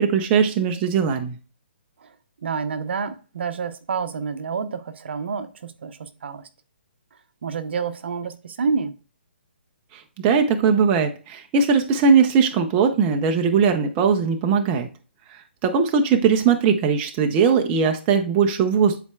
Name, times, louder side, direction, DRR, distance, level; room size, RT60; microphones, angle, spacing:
voice 1, 0.0-1.4 9.9-14.9 15.3-19.0, right 6 dB, 20° right, 0.6 m, -20 dB
voice 2, 2.4-6.5 7.4-9.0, right 5 dB, 65° right, 0.8 m, -28 dB
10.5 x 4.3 x 2.3 m
hypercardioid pair, 160°, 6 cm